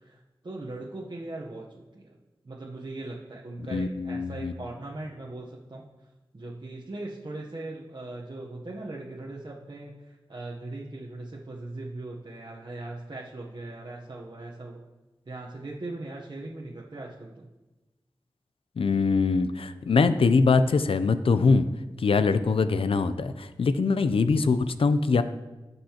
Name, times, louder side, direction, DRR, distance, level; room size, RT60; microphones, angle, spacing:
voice 1, 0.0-2.2 2.4-5.8 6.3-14.8 15.3-17.5, right 2 dB, 50° right, -3 dB, 0.9 m, -39 dB
voice 2, 3.7-4.5 18.8-21.7 22.0-25.2, left 4 dB, 80° left, 11 dB, 0.4 m, -23 dB
14.0 x 5.4 x 2.9 m, 1.1 s
wide cardioid pair, 50°, 9 cm